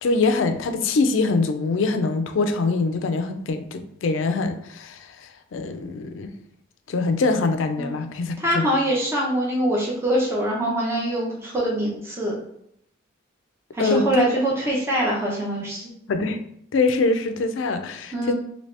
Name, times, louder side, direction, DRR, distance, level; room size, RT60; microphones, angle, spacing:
voice 1, 0.0-6.3 6.9-8.6 13.8-14.3 16.1-16.4 16.7-18.3, left 3 dB, 70° left, 8 dB, 0.4 m, -23 dB
voice 2, 8.4-12.4 13.7-15.9 18.1-18.3, right 1 dB, 15° right, -4 dB, 0.6 m, -24 dB
2.8 x 2.7 x 3.2 m, 0.72 s
head